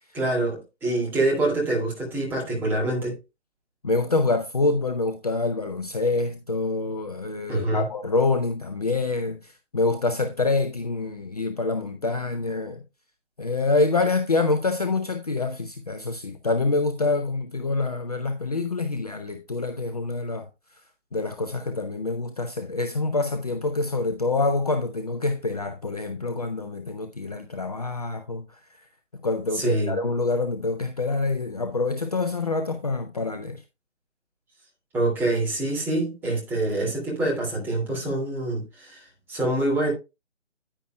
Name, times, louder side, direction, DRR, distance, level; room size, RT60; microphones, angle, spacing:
voice 1, 0.1-3.2 7.5-7.8 29.5-29.9 34.9-39.9, right 2 dB, 5° right, 2.4 m, -25 dB
voice 2, 3.8-12.8 13.4-20.8 21.1-28.9 29.2-33.6, left 3 dB, 35° left, 0.7 m, -26 dB
10.0 x 10.0 x 2.2 m
figure-of-eight pair, 145°, 36 cm